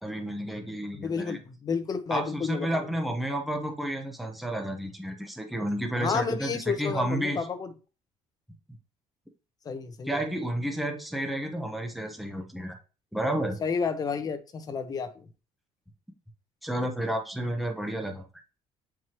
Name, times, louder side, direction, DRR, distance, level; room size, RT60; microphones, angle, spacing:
voice 1, 0.0-1.4 2.1-7.4 10.1-12.8 13.1-13.6 16.6-18.2, right 1 dB, ahead, 3 dB, 0.9 m, -31 dB
voice 2, 0.9-2.9 5.9-7.7 9.6-10.3 13.6-15.3, left 5 dB, 25° left, 8 dB, 0.8 m, -31 dB
7.3 x 4.7 x 3.0 m, 0.34 s
cardioid pair, 160°, 14 cm